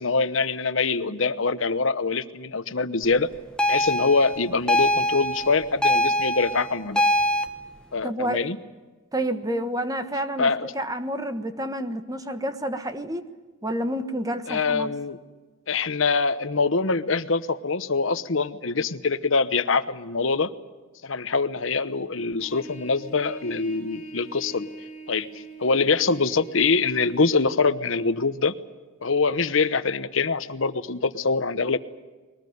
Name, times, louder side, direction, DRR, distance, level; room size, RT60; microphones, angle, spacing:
voice 1, 0.0-3.3 3.7-7.0 7.9-8.6 10.4-10.7 14.5-15.2 15.7-20.5 21.0-24.7 25.1-25.3 25.6-28.5 29.0-31.8, left 4 dB, 70° left, 13 dB, 1.0 m, -24 dB
sound 1, 3.6-7.5, left 1 dB, 5° left, 1.2 m, -23 dB
voice 2, 8.0-8.5 9.1-13.3 13.6-14.9, right 1 dB, 15° right, 9 dB, 1.4 m, -29 dB
Trumpet, 22.4-27.4, right 2 dB, 40° left, 3.2 m, -41 dB
22.0 x 19.5 x 9.4 m, 1.3 s
head